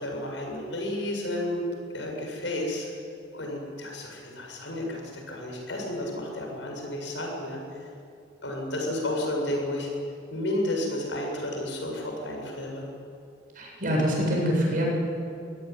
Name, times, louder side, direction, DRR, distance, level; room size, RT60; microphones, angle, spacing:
voice 1, 0.0-1.6 1.9-2.9 3.3-7.9 8.4-9.9 10.3-12.8, left 1 dB, 80° left, 1 dB, 7.4 m, -32 dB
voice 2, 13.5-14.9, equal, 45° right, -1 dB, 7.8 m, -25 dB
25.0 x 17.0 x 9.8 m, 2.5 s
head